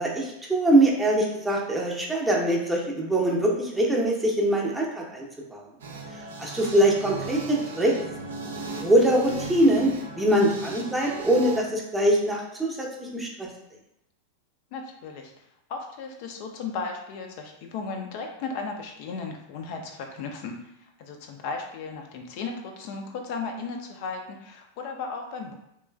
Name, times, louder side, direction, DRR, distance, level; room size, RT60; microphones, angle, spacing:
voice 1, 0.0-5.3 5.5-5.6 6.4-7.9 8.7-13.5, right 1 dB, 10° right, -2 dB, 0.6 m, -23 dB
sound 1, 5.8-11.6, right 3 dB, 65° right, 0.5 m, -37 dB
voice 2, 14.7-15.3 15.7-20.7 21.0-25.5, left 4 dB, 45° left, 3 dB, 0.4 m, -35 dB
3.1 x 2.9 x 2.3 m, 0.81 s
figure-of-eight pair, 90°, 0 cm